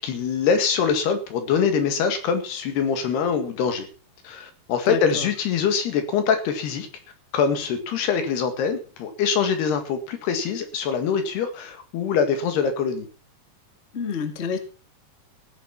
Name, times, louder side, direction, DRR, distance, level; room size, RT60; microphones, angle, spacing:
voice 1, 0.0-3.9 4.2-6.9 7.3-13.1, left 6 dB, 80° left, 7 dB, 4.0 m, -24 dB
voice 2, 4.9-5.2 13.9-14.6, left 5 dB, 30° left, 7 dB, 1.2 m, -28 dB
16.0 x 9.7 x 5.9 m, 0.39 s
omnidirectional pair, 4.6 m